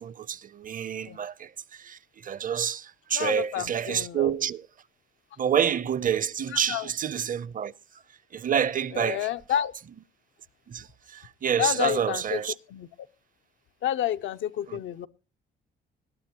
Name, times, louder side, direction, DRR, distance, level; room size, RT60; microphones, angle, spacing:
voice 1, 0.0-4.7 5.4-7.7 8.3-9.3 10.7-12.5 14.7-14.8, right 8 dB, 45° right, 0.6 m, -28 dB
voice 2, 3.1-4.3 6.5-6.9 8.9-9.7 11.6-12.4 12.7-12.9 13.8-15.1, left 11 dB, 75° left, 0.7 m, -29 dB
19.5 x 12.5 x 2.9 m
cardioid pair, 90°, 20 cm